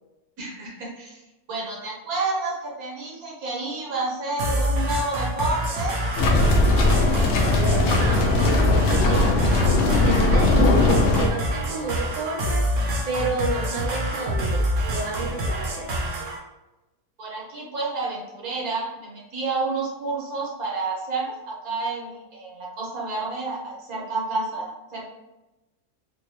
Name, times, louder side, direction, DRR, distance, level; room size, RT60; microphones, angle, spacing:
voice 1, 0.4-1.2 1.5-5.9 17.2-25.0, right 3 dB, 80° right, -3 dB, 1.5 m, -30 dB
sound 1, 4.4-16.4, equal, 65° right, 1.0 m, -26 dB
sound 2, 6.2-11.3, left 2 dB, 60° left, 0.7 m, -19 dB
voice 2, 7.7-15.9, right 3 dB, 45° right, -2 dB, 0.6 m, -31 dB
3.8 x 2.3 x 3.0 m, 1.0 s
omnidirectional pair, 1.5 m